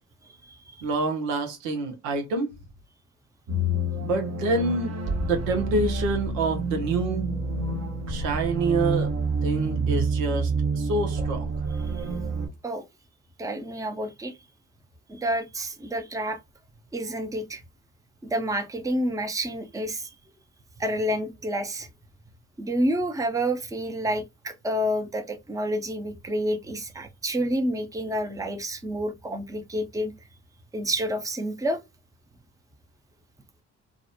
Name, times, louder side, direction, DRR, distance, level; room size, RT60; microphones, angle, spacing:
voice 1, 0.3-0.8 12.0-12.1 12.6-12.8 13.4-14.3 15.1-16.4 16.9-17.6 18.2-20.1 20.8-21.9 22.6-30.1 30.7-31.8, equal, 10° right, 0.6 m, -29 dB
voice 2, 0.8-2.5 4.0-7.3 8.1-9.1 9.4-11.5, right 3 dB, 80° right, 0.7 m, -27 dB
sound 1, 3.5-12.5, right 2 dB, 40° right, 0.9 m, -28 dB
2.4 x 2.0 x 2.6 m
hypercardioid pair, 45°, 38 cm